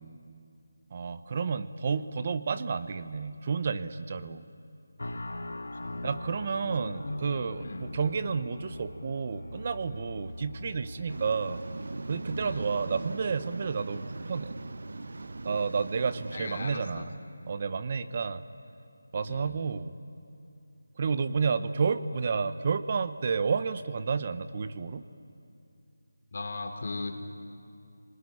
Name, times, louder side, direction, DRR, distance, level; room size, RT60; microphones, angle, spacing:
voice 1, 0.9-4.4 6.0-11.6 12.1-14.5 15.4-17.1 17.5-18.4 19.1-19.9 21.0-25.0, right 5 dB, 35° right, 12 dB, 0.9 m, -31 dB
sound 1, 5.0-11.9, left 2 dB, 80° left, 1.3 m, -43 dB
voice 2, 5.7-6.1 6.7-7.2 7.6-7.9 10.3-10.4 12.4-12.7 16.3-17.1 19.3-19.6 26.3-27.2, left 3 dB, 50° left, 4 dB, 3.0 m, -38 dB
Musical instrument, 5.8-12.8, right 1 dB, 5° left, 3.7 m, -46 dB
Waves surf, 11.1-16.8, right 2 dB, 65° right, 0.9 m, -40 dB
28.0 x 21.0 x 9.9 m, 2.5 s
figure-of-eight pair, 170°, 0 cm